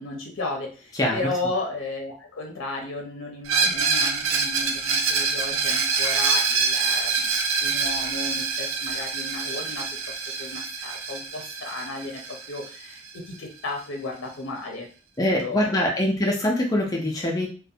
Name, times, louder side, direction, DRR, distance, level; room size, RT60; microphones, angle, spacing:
voice 1, 0.0-9.9 10.4-14.9 15.3-15.9, left 2 dB, 70° left, 1 dB, 0.5 m, -34 dB
Screech, 3.5-13.1, right 5 dB, 85° right, 0.4 m, -25 dB
voice 2, 15.2-17.5, left 1 dB, 20° left, -1 dB, 0.4 m, -23 dB
2.4 x 2.1 x 2.7 m, 0.37 s
head